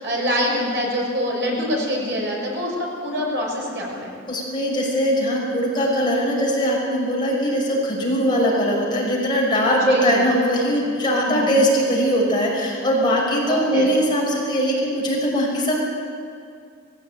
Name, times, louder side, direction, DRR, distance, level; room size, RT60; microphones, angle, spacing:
voice 1, 0.0-4.1 9.8-10.2 11.3-11.5 13.5-13.9, equal, 55° right, -2 dB, 6.1 m, -25 dB
voice 2, 4.3-15.8, equal, 25° left, -4 dB, 6.1 m, -21 dB
21.5 x 16.5 x 9.0 m, 2.4 s
head